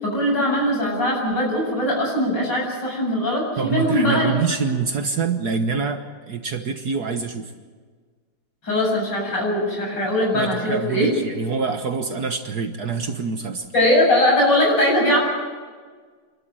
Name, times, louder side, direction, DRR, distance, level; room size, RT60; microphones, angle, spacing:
voice 1, 0.0-4.3 8.6-11.1 13.7-15.2, left 1 dB, 60° left, -2 dB, 8.4 m, -20 dB
voice 2, 3.6-7.5 10.3-13.7, right 5 dB, 55° right, 6 dB, 1.6 m, -26 dB
28.0 x 12.5 x 9.0 m, 1.5 s
omnidirectional pair, 2.2 m